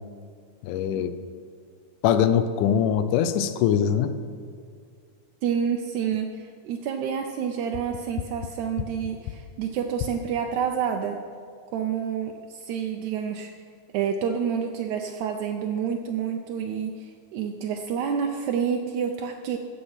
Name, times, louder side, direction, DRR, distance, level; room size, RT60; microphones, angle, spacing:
voice 1, 0.6-1.2 2.0-4.1, left 8 dB, 85° left, 11 dB, 2.2 m, -22 dB
voice 2, 5.4-11.2 11.7-13.5 13.9-19.6, right 7 dB, 80° right, 3 dB, 2.0 m, -28 dB
15.0 x 7.0 x 5.7 m, 2.1 s
omnidirectional pair, 3.5 m